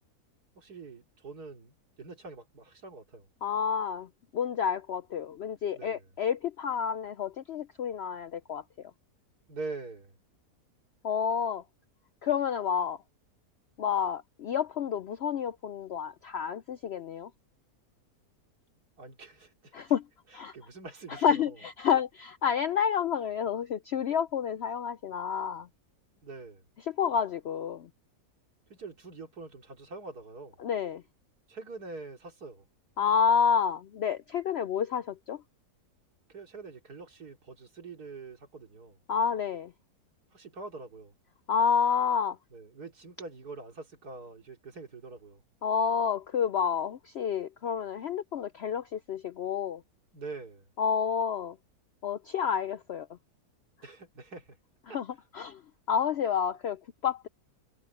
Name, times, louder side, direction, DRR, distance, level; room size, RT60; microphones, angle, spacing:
voice 1, 0.5-3.3 5.7-6.1 9.5-10.2 19.0-19.8 20.3-21.6 26.2-26.6 28.7-30.6 31.5-32.7 36.3-39.0 40.3-41.1 42.5-45.4 50.1-50.7 53.8-54.6 54.9-55.0, right 3 dB, 80° right, 3.5 m, -44 dB
voice 2, 3.4-4.1 4.3-8.6 11.0-11.6 12.2-13.0 13.8-17.3 19.7-20.0 20.3-20.5 21.1-25.7 26.9-27.9 30.6-31.0 33.0-35.4 39.1-39.7 41.5-42.4 45.6-49.8 50.8-51.6 52.0-53.1 54.9-55.1 55.3-55.6 55.9-57.3, left 7 dB, 70° left, 0.6 m, -29 dB
omnidirectional pair, 1.6 m